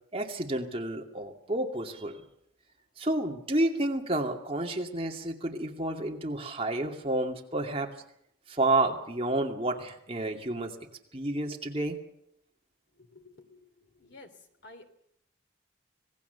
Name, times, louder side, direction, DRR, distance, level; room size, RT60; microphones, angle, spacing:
voice 1, 0.1-2.2 3.0-7.9 8.5-10.8 11.1-12.0, right 2 dB, 30° right, 2 dB, 2.4 m, -30 dB
voice 2, 13.0-13.6 13.9-14.3 14.6-14.9, left 2 dB, 60° left, 7 dB, 2.9 m, -51 dB
26.0 x 18.5 x 6.9 m, 0.74 s
head